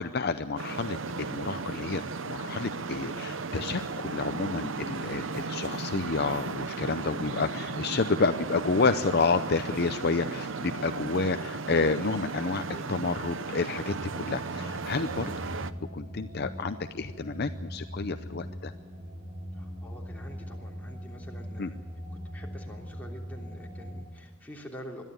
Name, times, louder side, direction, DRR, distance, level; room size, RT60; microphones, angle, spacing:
voice 1, 0.0-15.4 15.9-18.7 21.6-21.7, left 4 dB, 50° left, 9 dB, 0.6 m, -30 dB
Traffic noise roadway noise, 0.6-15.7, right 4 dB, 65° right, 0.7 m, -35 dB
voice 2, 7.6-8.2 10.5-10.8 12.7-13.0 19.6-21.8 22.3-25.0, equal, 10° left, -2 dB, 3.1 m, -46 dB
sound 1, 13.9-24.0, equal, 30° right, 4.9 m, -41 dB
21.5 x 13.0 x 9.5 m, 1.2 s
head